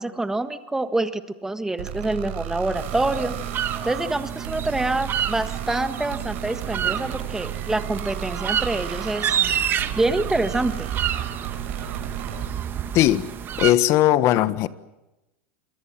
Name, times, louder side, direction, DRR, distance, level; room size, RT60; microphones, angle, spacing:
voice 1, 0.0-3.4 3.8-9.6 10.0-10.9, right 2 dB, 5° right, 1.6 m, -26 dB
sound 1, 1.8-12.5, right 11 dB, 75° right, 6.0 m, -34 dB
sound 2, 2.7-13.7, right 9 dB, 30° right, 1.5 m, -29 dB
voice 2, 12.9-13.3 13.6-14.7, left 13 dB, 45° left, 1.4 m, -18 dB
27.5 x 23.0 x 7.4 m
supercardioid pair, 125°, 7 cm